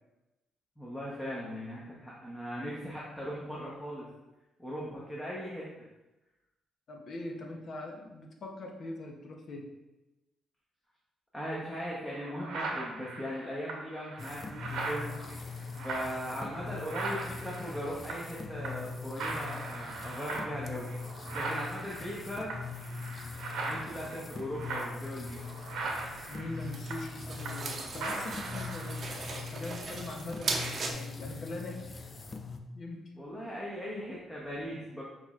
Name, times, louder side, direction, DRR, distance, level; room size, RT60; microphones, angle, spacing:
voice 1, 0.8-4.1 4.6-5.7 11.3-15.1 15.8-20.9 21.3-22.5 23.7-25.4 33.2-35.0, equal, 10° left, -6 dB, 0.9 m, -39 dB
voice 2, 6.9-9.7 26.2-31.7 32.7-33.1, left 2 dB, 55° left, 2 dB, 0.7 m, -42 dB
sound 1, 11.5-11.6 12.1-18.4 18.6-18.9 19.2-27.7 28.0-29.0, right 3 dB, 85° right, 0.8 m, -39 dB
sound 2, 14.2-32.6, left 4 dB, 35° left, 0.4 m, -42 dB
sound 3, 25.4-30.9, right 3 dB, 50° right, 0.6 m, -39 dB
6.1 x 3.0 x 2.4 m, 1.0 s
cardioid pair, 90°, 0 cm